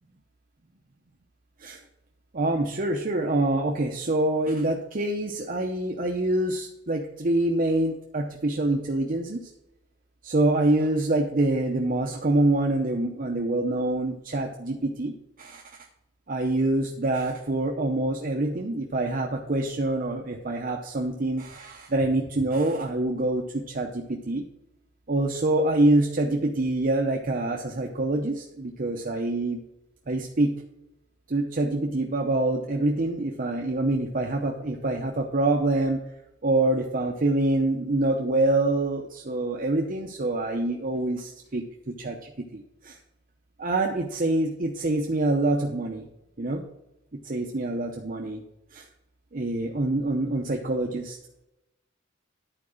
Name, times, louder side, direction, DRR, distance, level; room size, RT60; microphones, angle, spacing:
voice 1, 2.3-9.5 10.2-15.6 16.3-24.4 25.1-29.6 30.1-30.6 31.3-36.0 36.4-43.0 43.6-46.1 46.4-46.6 47.1-48.4 48.7-48.9 49.3-51.2, right 2 dB, 45° right, 1 dB, 0.7 m, -26 dB
11.0 x 4.8 x 6.4 m, 0.90 s
head